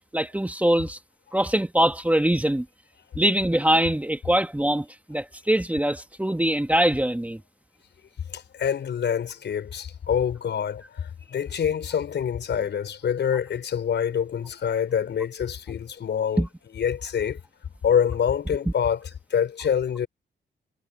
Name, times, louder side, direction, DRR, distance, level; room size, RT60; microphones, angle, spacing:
voice 1, 0.1-1.0 1.3-2.6 3.1-7.4 16.4-16.5, right 1 dB, 10° right, 1.7 m, -23 dB
voice 2, 8.3-16.5 16.7-17.4 17.8-20.1, left 8 dB, 70° left, 5.5 m, -26 dB
cardioid pair, 70°, 19 cm